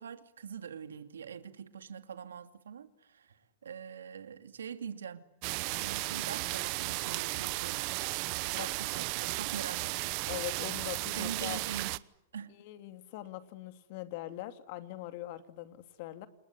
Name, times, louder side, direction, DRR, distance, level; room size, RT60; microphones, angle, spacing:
voice 1, 0.0-5.2 5.7-7.8 8.4-10.2 11.2-11.9 12.3-12.6, right 7 dB, 90° right, 2.5 m, -43 dB
sound 1, 5.4-12.0, right 25 dB, 50° right, 1.0 m, -35 dB
voice 2, 10.3-11.6 12.5-16.3, left 15 dB, 55° left, 2.7 m, -42 dB
28.0 x 20.5 x 9.8 m
hypercardioid pair, 125°, 0 cm